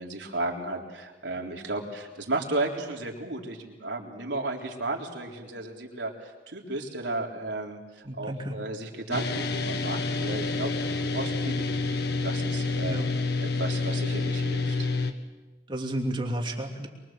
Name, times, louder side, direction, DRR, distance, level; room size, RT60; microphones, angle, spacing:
voice 1, 0.0-7.8 8.2-11.9 12.2-13.0 13.6-14.9, right 2 dB, 85° right, 0 dB, 3.8 m, -34 dB
voice 2, 8.0-8.5 12.8-13.1 15.7-16.9, right 1 dB, 30° right, 2 dB, 3.0 m, -32 dB
sound 1, 9.1-15.1, left 3 dB, 65° left, 1.6 m, -28 dB
24.0 x 23.5 x 7.6 m, 1.2 s
head